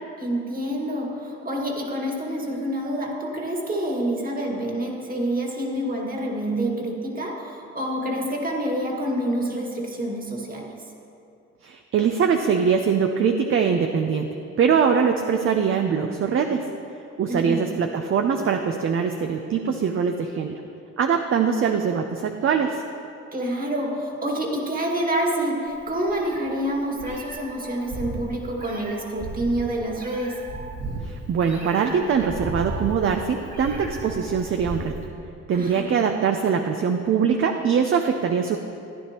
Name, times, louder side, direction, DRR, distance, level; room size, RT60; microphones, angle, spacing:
voice 1, 0.2-10.8 17.3-17.7 23.3-30.5 35.5-36.0, right 1 dB, 30° right, 0 dB, 1.9 m, -27 dB
voice 2, 11.6-16.7 17.2-20.6 21.0-22.8 31.0-35.0 35.5-38.6, right 6 dB, 45° right, 5 dB, 0.6 m, -22 dB
Meow, 25.7-35.1, right 2 dB, 70° right, 2.5 m, -35 dB
14.5 x 9.9 x 3.0 m, 2.6 s
cardioid pair, 85°, 30 cm